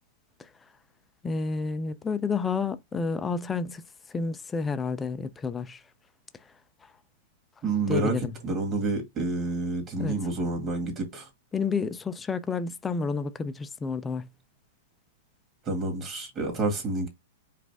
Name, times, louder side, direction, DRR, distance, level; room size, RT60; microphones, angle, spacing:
voice 1, 1.2-3.8 4.1-5.8 7.9-8.3 10.0-10.2 11.5-14.3, left 4 dB, 10° left, 0.4 m, -30 dB
voice 2, 7.6-8.2 8.4-11.3 15.7-17.1, right 2 dB, 25° right, 1.8 m, -28 dB
5.0 x 2.4 x 3.4 m
hypercardioid pair, 150°, 0 cm